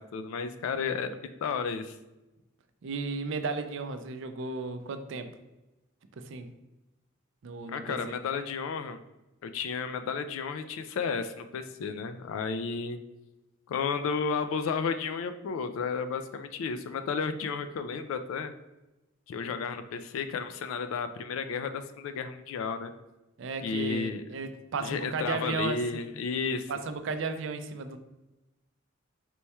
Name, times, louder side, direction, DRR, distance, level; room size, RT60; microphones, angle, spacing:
voice 1, 0.0-2.0 7.7-9.0 9.4-13.0 13.7-18.5 19.3-22.9 23.6-24.2 24.8-26.7, left 5 dB, 80° left, 9 dB, 0.3 m, -32 dB
voice 2, 2.8-5.3 6.2-6.5 7.4-8.2 23.4-25.8 26.7-28.0, right 4 dB, 65° right, 8 dB, 0.4 m, -34 dB
4.5 x 2.2 x 4.1 m, 1.0 s
head